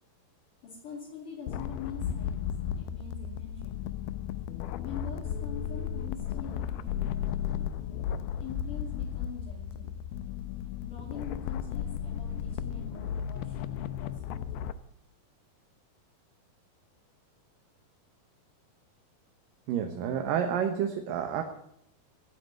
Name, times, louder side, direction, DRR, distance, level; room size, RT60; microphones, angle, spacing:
voice 1, 0.6-3.8 4.8-7.6 8.4-10.0 10.8-14.2 14.5-14.7, left 5 dB, 60° left, -4 dB, 4.3 m, -44 dB
sound 1, 1.5-14.7, left 9 dB, 85° left, 2.6 m, -34 dB
voice 2, 19.7-21.4, right 8 dB, 70° right, 5 dB, 2.7 m, -29 dB
17.0 x 8.7 x 9.1 m, 0.73 s
omnidirectional pair, 4.3 m